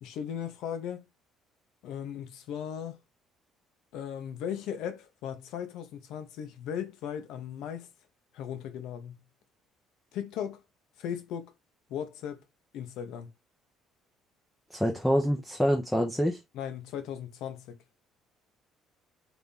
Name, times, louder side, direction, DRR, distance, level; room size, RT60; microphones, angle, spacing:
voice 1, 0.0-1.0 1.8-3.0 3.9-7.9 8.3-9.2 10.1-10.6 11.0-11.5 11.9-12.4 12.7-13.3 16.5-17.8, left 9 dB, 65° left, 1.0 m, -37 dB
voice 2, 14.7-16.4, equal, 5° left, 0.6 m, -26 dB
4.1 x 3.6 x 3.5 m
cardioid pair, 180°, 0 cm